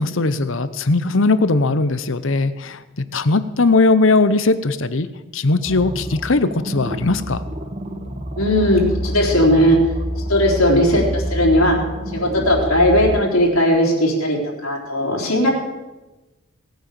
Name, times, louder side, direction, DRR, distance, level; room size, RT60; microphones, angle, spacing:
voice 1, 0.0-5.1 5.3-7.5, left 3 dB, 60° left, 13 dB, 0.8 m, -19 dB
sound 1, 5.6-13.2, right 1 dB, 30° right, 1.3 m, -28 dB
voice 2, 8.4-9.8 10.3-11.8 12.1-15.5, equal, 85° left, -2 dB, 3.8 m, -17 dB
18.5 x 9.1 x 6.9 m, 1.1 s
head